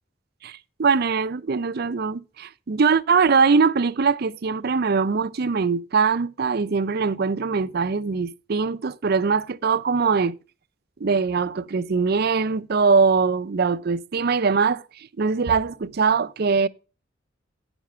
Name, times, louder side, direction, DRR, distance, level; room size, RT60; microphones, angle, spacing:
voice 1, 0.4-10.4 11.0-14.8 15.2-16.7, right 5 dB, 50° right, 0.5 m, -22 dB
9.4 x 7.0 x 5.5 m
head